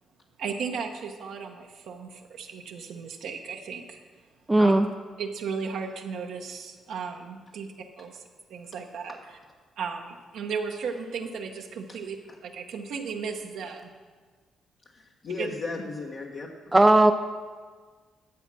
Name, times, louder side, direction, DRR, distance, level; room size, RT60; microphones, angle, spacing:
voice 1, 0.4-4.0 4.6-4.7 5.2-7.7 8.0-8.2 8.5-9.2 9.8-12.2 12.4-13.9 15.4-15.5, right 5 dB, 80° right, 2 dB, 1.1 m, -35 dB
voice 2, 4.5-4.9 16.7-17.1, right 2 dB, 15° right, 6 dB, 0.5 m, -17 dB
voice 3, 14.8-16.7, left 3 dB, 55° left, -2 dB, 1.2 m, -36 dB
11.5 x 7.3 x 6.2 m, 1.5 s
cardioid pair, 80°, 0 cm